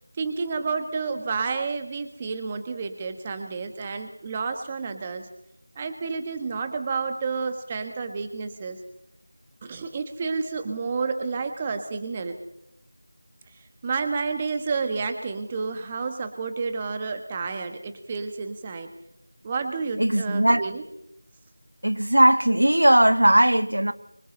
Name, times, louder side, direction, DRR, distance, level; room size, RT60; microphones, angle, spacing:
voice 1, 0.2-5.3 5.7-8.8 9.6-12.4 13.8-18.9 19.4-20.8, right 4 dB, 15° right, 1.5 m, -30 dB
voice 2, 20.0-20.6 21.8-23.9, right 1 dB, 85° right, 1.6 m, -18 dB
29.0 x 25.0 x 4.1 m
figure-of-eight pair, 175°, 0 cm